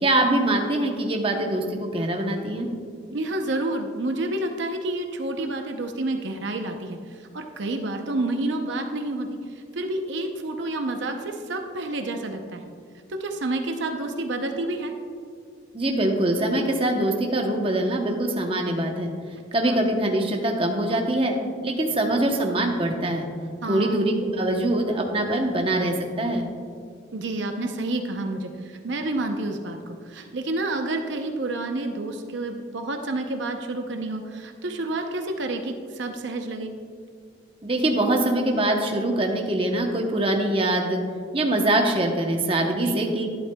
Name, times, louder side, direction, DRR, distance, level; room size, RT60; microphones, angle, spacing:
voice 1, 0.0-2.7 15.7-19.1 19.5-21.3 21.6-23.3 23.7-26.5 37.6-41.0 41.3-43.3, right 1 dB, 30° right, 2 dB, 0.8 m, -23 dB
voice 2, 3.1-12.6 13.1-14.9 19.7-19.8 23.6-24.0 27.1-36.7 42.8-43.0, right 2 dB, 70° right, 4 dB, 0.6 m, -29 dB
12.0 x 11.0 x 2.2 m, 2.2 s
head